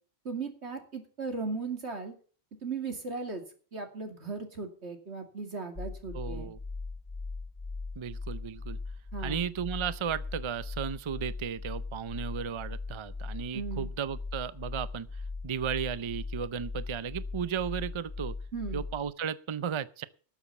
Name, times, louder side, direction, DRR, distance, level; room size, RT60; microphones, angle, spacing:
voice 1, 0.2-2.1 2.6-3.4 3.7-6.5 9.1-9.4 13.5-13.9 18.5-18.8, right 4 dB, 90° right, 2.8 m, -37 dB
sound 1, 5.8-19.1, left 3 dB, 25° left, 0.7 m, -39 dB
voice 2, 6.1-6.6 8.0-8.8 9.2-15.1 15.4-18.4 18.7-20.1, right 7 dB, 35° right, 0.5 m, -35 dB
12.5 x 7.2 x 7.9 m
omnidirectional pair, 1.1 m